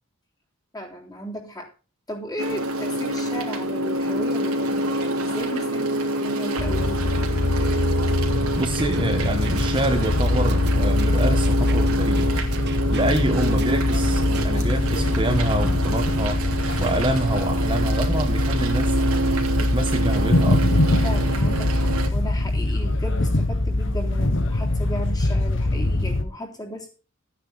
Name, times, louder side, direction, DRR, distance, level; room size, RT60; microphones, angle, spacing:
voice 1, 0.7-1.7 2.1-7.2 21.0-26.9, equal, 15° left, 3.5 m, -35 dB
sound 1, 2.4-22.1, right 1 dB, 80° right, 3.1 m, -27 dB
sound 2, 6.6-26.2, left 2 dB, 55° left, 1.3 m, -23 dB
voice 2, 8.6-12.4 12.9-16.4 16.8-19.0 19.6-20.8, right 1 dB, 20° right, 1.2 m, -26 dB
sound 3, 8.8-14.5, right 6 dB, 50° right, 1.5 m, -39 dB
14.5 x 9.6 x 4.1 m
head